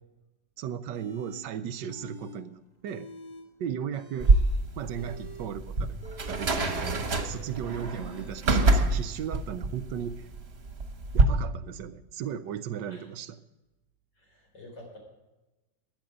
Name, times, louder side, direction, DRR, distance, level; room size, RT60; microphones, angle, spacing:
voice 1, 0.6-3.1 3.6-4.3 4.8-6.0 6.3-10.3 11.1-13.4, right 8 dB, 75° right, 12 dB, 1.3 m, -36 dB
sound 1, 0.9-1.5 1.9-2.4 2.7-3.5 3.8-8.5, left 1 dB, 20° left, 1.8 m, -48 dB
sound 2, 4.2-11.2, right 3 dB, 35° right, 1.5 m, -26 dB
voice 2, 14.2-15.0, left 1 dB, 65° left, 0 dB, 5.0 m, -50 dB
15.5 x 10.5 x 5.1 m, 1.1 s
omnidirectional pair, 2.0 m